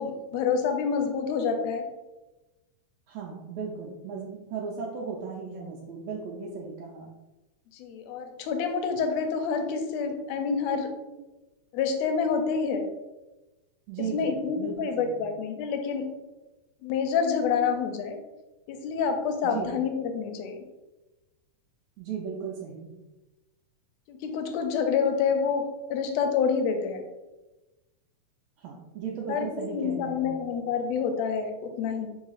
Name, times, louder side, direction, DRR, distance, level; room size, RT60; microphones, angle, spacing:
voice 1, 0.0-1.8 7.7-10.9 11.7-12.9 14.1-16.1 16.8-18.2 18.7-20.6 24.1-27.0 29.3-32.1, left 6 dB, 80° left, 5 dB, 1.7 m, -28 dB
voice 2, 3.1-7.1 11.1-11.2 13.9-15.2 19.4-19.7 22.0-22.9 28.6-30.3, right 6 dB, 80° right, -4 dB, 1.7 m, -36 dB
5.4 x 4.0 x 2.4 m, 1.1 s
omnidirectional pair, 3.3 m